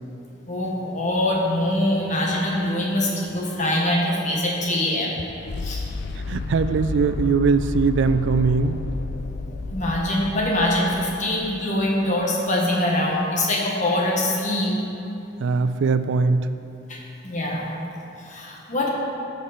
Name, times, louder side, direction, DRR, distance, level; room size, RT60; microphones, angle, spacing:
voice 1, 0.5-5.1 5.6-5.8 9.7-14.8 16.9-17.7 18.2-18.9, left 1 dB, 40° left, -3 dB, 1.6 m, -23 dB
sound 1, 3.3-11.4, left 3 dB, 60° left, 0.5 m, -32 dB
sound 2, 6.3-9.7, equal, 85° left, 1.7 m, -39 dB
voice 2, 6.3-8.8 15.4-16.5, right 4 dB, 70° right, 11 dB, 0.3 m, -21 dB
14.0 x 5.3 x 4.3 m, 2.8 s
head